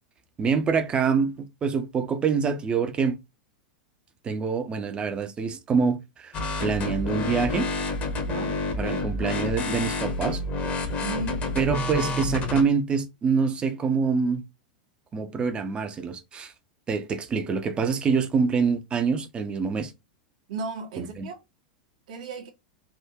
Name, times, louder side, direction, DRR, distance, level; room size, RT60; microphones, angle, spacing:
voice 1, 0.4-3.2 4.2-7.7 8.7-10.4 11.6-14.4 15.1-16.5 16.9-19.9 21.0-21.3, right 5 dB, 20° right, 0.8 m, -25 dB
sound 1, 6.3-12.6, left 2 dB, 30° left, 1.2 m, -29 dB
voice 2, 8.1-8.6 11.0-11.5 20.5-21.4 22.1-22.5, right 4 dB, 60° right, 1.1 m, -35 dB
3.7 x 2.6 x 4.4 m
figure-of-eight pair, 90°, 5 cm